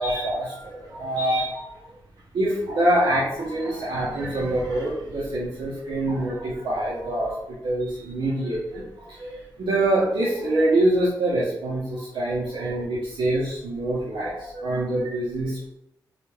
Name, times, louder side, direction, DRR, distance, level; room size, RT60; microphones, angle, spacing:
voice 1, 0.0-1.8 2.3-7.4 7.6-15.7, right 1 dB, 75° right, -7 dB, 0.7 m, -25 dB
2.4 x 2.2 x 3.1 m, 0.80 s
cardioid pair, 55°, 8 cm